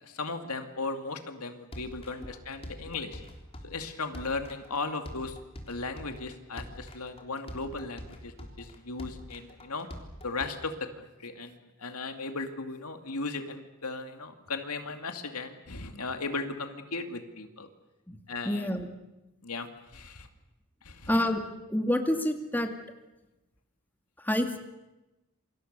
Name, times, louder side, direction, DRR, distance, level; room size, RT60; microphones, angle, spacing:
voice 1, 0.0-3.2 3.6-5.4 5.7-9.9 10.2-17.7 18.3-18.7 19.4-20.3 20.8-21.1, left 3 dB, 90° left, 6 dB, 2.5 m, -37 dB
sound 1, 1.7-10.5, equal, 25° left, 3.5 m, -44 dB
voice 2, 18.4-18.9 21.1-21.4 21.7-22.7 24.2-24.6, left 1 dB, 10° left, 5 dB, 2.2 m, -27 dB
28.0 x 26.0 x 6.9 m, 0.99 s
head